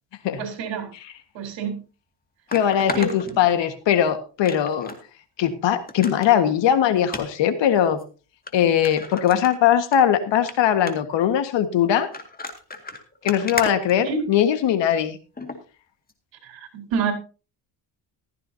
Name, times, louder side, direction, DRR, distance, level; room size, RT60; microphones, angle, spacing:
voice 1, 0.4-0.9 1.3-1.8 2.9-3.3 14.0-14.3 16.4-17.1, right 5 dB, 75° right, 4.3 m, -28 dB
sound 1, 1.4-1.5 2.5-3.9 4.4-5.0 5.4-5.5 5.9-6.3 7.0-7.2 8.0-8.1 8.5-8.6 8.8-10.0 10.3-10.5 10.9-11.2 11.9-14.6 15.4-15.6 16.1-16.2, left 3 dB, 20° left, 2.1 m, -34 dB
voice 2, 2.5-4.9 5.4-8.0 8.5-12.1 13.2-15.2, left 9 dB, 70° left, 1.7 m, -20 dB
15.0 x 13.5 x 2.8 m
cardioid pair, 110°, 46 cm